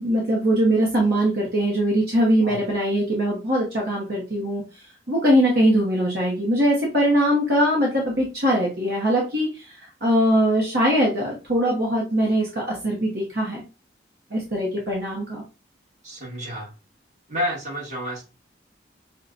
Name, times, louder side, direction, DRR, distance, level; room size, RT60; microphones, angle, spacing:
voice 1, 0.0-13.6 14.3-15.4, equal, 60° right, -3 dB, 1.0 m, -22 dB
voice 2, 16.0-16.7 17.3-18.2, equal, 40° right, -2 dB, 1.4 m, -30 dB
5.4 x 2.2 x 2.5 m, 0.30 s
head